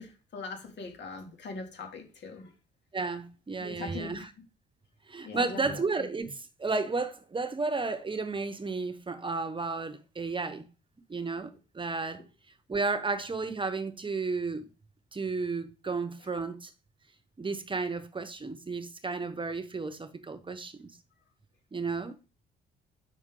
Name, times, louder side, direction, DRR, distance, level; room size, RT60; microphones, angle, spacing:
voice 1, 0.0-2.5 3.6-4.3 5.2-5.8, left 4 dB, 60° left, 2.6 m, -41 dB
voice 2, 2.9-4.3 5.1-10.6 11.1-12.2 12.7-14.7 15.1-16.7 17.4-21.0 21.7-22.2, right 4 dB, 25° right, 0.9 m, -33 dB
8.1 x 6.2 x 3.8 m
cardioid pair, 90°, 20 cm